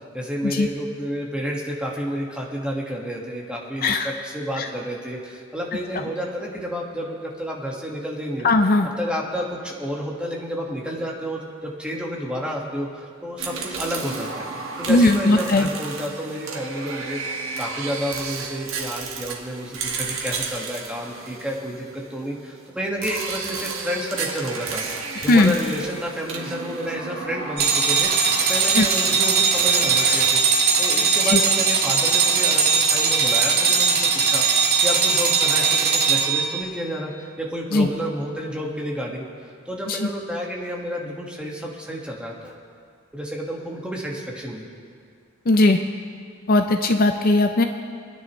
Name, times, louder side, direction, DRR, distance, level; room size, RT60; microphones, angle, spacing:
voice 1, 0.1-8.5 9.0-14.5 14.8-30.4 30.8-39.3 39.7-42.6 43.1-44.7, equal, 5° right, -3 dB, 1.7 m, -30 dB
voice 2, 8.4-8.9 14.9-15.7 25.3-25.5 28.7-28.9 31.3-31.4 37.7-37.9 39.9-40.0 45.5-45.8 46.5-47.7, left 2 dB, 45° left, 6 dB, 0.5 m, -18 dB
sound 1, 13.4-22.2 23.0-30.3, right 4 dB, 75° right, 1.6 m, -32 dB
sound 2, 27.6-36.6, right 5 dB, 50° right, 2.1 m, -19 dB
28.0 x 10.0 x 3.2 m, 2.2 s
head